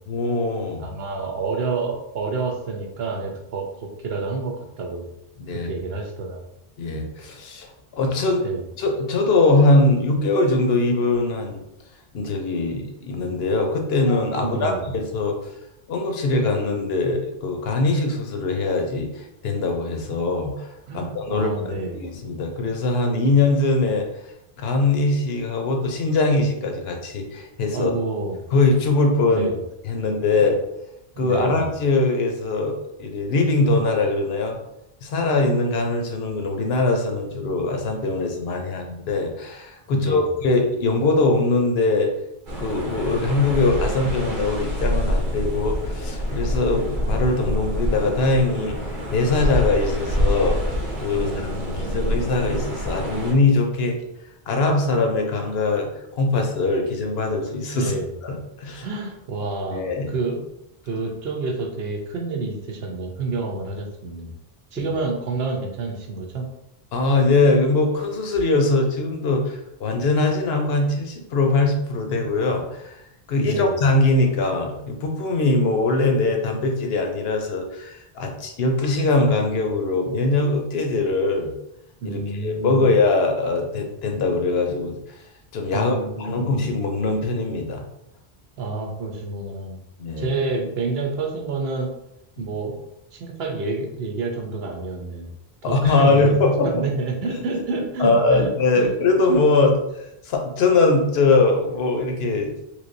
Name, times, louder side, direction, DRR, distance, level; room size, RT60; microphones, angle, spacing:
voice 1, 0.1-0.9 5.5-5.7 6.8-8.4 8.8-11.6 12.1-15.4 15.9-21.5 21.9-24.1 24.6-27.9 28.5-29.5 29.8-30.6 31.2-34.6 35.0-42.1 42.6-48.8 49.1-50.6 51.0-51.3 51.7-54.0 54.5-57.9 58.2-58.9 59.7-60.1 64.8-64.9 66.9-73.0 73.3-81.5 82.0-85.2 85.5-87.8 90.0-90.3 95.6-96.7 98.0-99.8 100.2-102.5, left 3 dB, 80° left, 3 dB, 0.9 m, -21 dB
voice 2, 0.8-5.0 5.5-6.4 8.4-8.6 14.4-14.9 20.9-22.1 27.7-28.4 29.3-29.6 30.3-30.5 31.2-31.6 39.9-40.2 51.1-52.1 57.7-58.1 58.8-60.4 60.8-64.3 64.7-66.5 73.3-73.8 82.0-83.0 85.7-86.5 88.6-89.8 90.2-91.9 92.4-92.8 93.1-95.3 95.6-96.2 96.7-98.5 98.8-98.9, right 3 dB, 80° right, 2 dB, 0.9 m, -29 dB
sound 1, 42.5-53.3, equal, 55° right, 0.8 m, -26 dB
3.4 x 2.9 x 2.6 m, 0.84 s
omnidirectional pair, 1.0 m